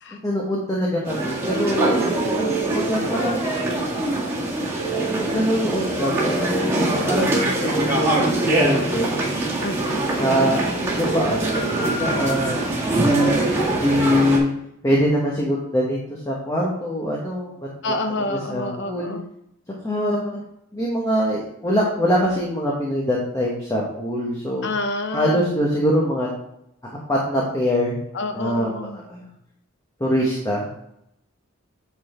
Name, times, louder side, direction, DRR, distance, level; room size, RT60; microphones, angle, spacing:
voice 1, 0.2-2.0 2.3-3.4 5.0-9.1 10.1-14.5 14.8-16.0 16.2-17.5 18.3-19.1 19.8-20.4 20.7-24.7 25.1-26.3 27.1-28.0 28.3-29.2 30.0-30.7, equal, 15° left, -3 dB, 1.2 m, -23 dB
sound 1, 1.0-14.4, right 2 dB, 15° right, 1.8 m, -23 dB
voice 2, 17.8-19.2 24.6-25.4 28.1-29.0, left 2 dB, 60° left, 6 dB, 0.6 m, -28 dB
8.5 x 4.1 x 4.3 m, 0.78 s
head